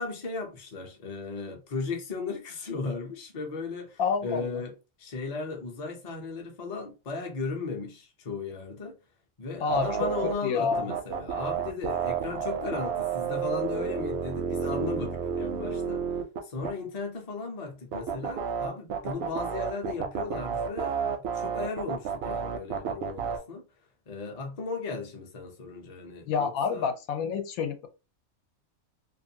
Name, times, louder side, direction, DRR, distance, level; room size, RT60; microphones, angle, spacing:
voice 1, 0.0-4.7 5.0-9.0 9.4-16.0 16.4-23.6 24.1-26.9, left 4 dB, 40° left, 0.6 m, -36 dB
voice 2, 4.0-4.6 9.6-10.9 26.3-27.9, left 6 dB, 85° left, 1.0 m, -29 dB
sound 1, 9.7-10.3 10.7-16.7 17.9-23.4, right 7 dB, 65° right, 0.7 m, -31 dB
2.5 x 2.5 x 2.7 m
omnidirectional pair, 1.4 m